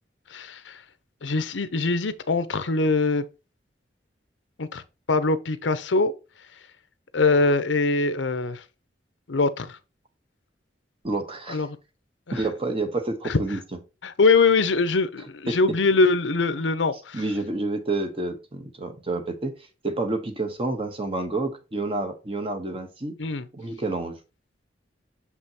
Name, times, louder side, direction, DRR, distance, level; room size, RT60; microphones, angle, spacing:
voice 1, 0.3-0.8 1.2-3.2 4.6-4.8 5.1-6.1 7.1-8.6 9.3-9.8 11.5-11.7 12.3-12.4 13.2-13.4 14.0-17.2 23.2-23.5, left 3 dB, 90° left, 0.8 m, -22 dB
voice 2, 11.0-11.6 12.3-13.6 15.5-15.6 17.1-19.6 19.8-23.2 23.5-24.2, right 2 dB, 30° right, 1.2 m, -29 dB
6.7 x 5.4 x 2.9 m
head